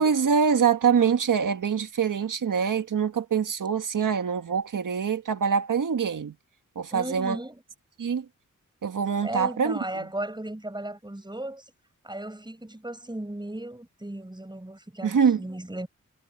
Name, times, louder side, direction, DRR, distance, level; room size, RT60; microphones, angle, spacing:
voice 1, 0.0-6.3 6.8-7.4 8.0-8.3 8.8-9.8 15.0-15.4, right 6 dB, 80° right, 1.8 m, -24 dB
voice 2, 6.9-7.6 9.2-11.7 12.0-15.9, right 1 dB, 15° right, 7.9 m, -36 dB
wide cardioid pair, 75°, 31 cm